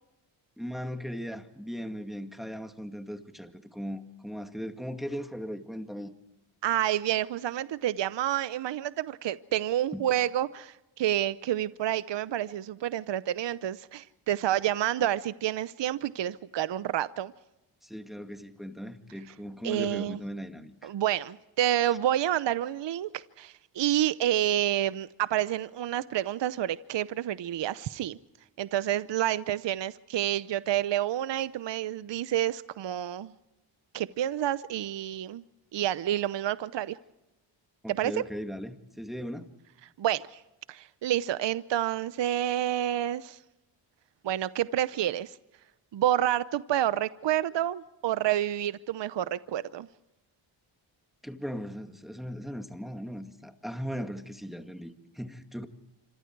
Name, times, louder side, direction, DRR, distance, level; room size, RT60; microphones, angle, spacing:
voice 1, 0.6-6.1 9.9-10.1 17.8-20.9 21.9-22.0 37.8-39.5 51.2-55.7, equal, ahead, 6 dB, 2.2 m, -38 dB
voice 2, 6.6-17.3 19.6-20.2 20.8-28.2 28.6-33.3 33.9-35.4 35.7-37.0 37.9-38.1 40.0-40.4 40.7-43.4 44.2-45.3 45.9-49.9, right 12 dB, 60° right, 16 dB, 0.8 m, -29 dB
27.0 x 26.0 x 4.7 m, 0.97 s
cardioid pair, 70°, 49 cm